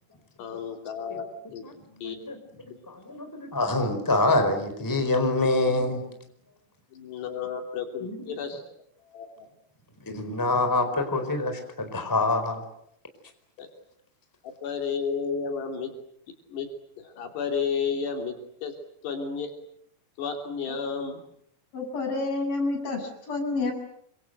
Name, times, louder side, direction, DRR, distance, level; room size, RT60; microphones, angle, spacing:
voice 1, 0.4-3.0 6.9-8.6 9.0-9.5 13.6-13.7 14.4-15.9 16.5-18.7 19.0-19.5 20.2-21.2, left 6 dB, 80° left, 5.2 m, -33 dB
voice 2, 2.0-2.4 2.9-6.0 8.0-8.2 10.0-12.6, left 2 dB, 5° left, 4.2 m, -25 dB
voice 3, 21.7-23.7, left 3 dB, 55° left, 9.1 m, -29 dB
28.5 x 26.0 x 7.9 m
omnidirectional pair, 4.8 m